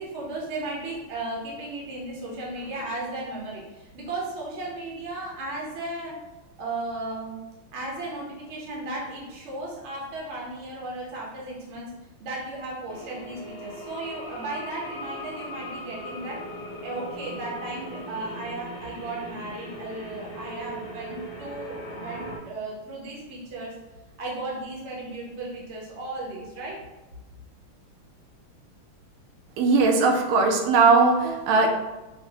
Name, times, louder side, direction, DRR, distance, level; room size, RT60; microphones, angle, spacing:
voice 1, 0.0-6.1 6.6-7.4 7.7-11.9 12.2-16.4 16.8-23.7 24.2-26.7, right 2 dB, 55° right, -4 dB, 0.8 m, -35 dB
sound 1, 12.9-22.4, equal, 30° left, 1.0 m, -39 dB
voice 2, 29.6-31.7, right 4 dB, 85° right, 3 dB, 1.5 m, -19 dB
4.9 x 2.1 x 2.8 m, 1.1 s
omnidirectional pair, 2.4 m